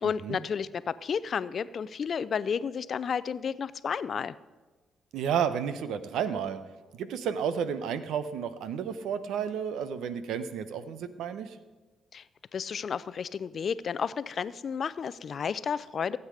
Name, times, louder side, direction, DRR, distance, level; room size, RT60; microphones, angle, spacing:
voice 1, 0.0-4.3 12.1-12.2 12.5-16.2, left 6 dB, 50° left, 17 dB, 0.4 m, -32 dB
voice 2, 5.1-6.6 6.9-11.6, right 7 dB, 80° right, 12 dB, 0.8 m, -31 dB
16.0 x 8.1 x 5.0 m, 1.3 s
cardioid pair, 90°, 0 cm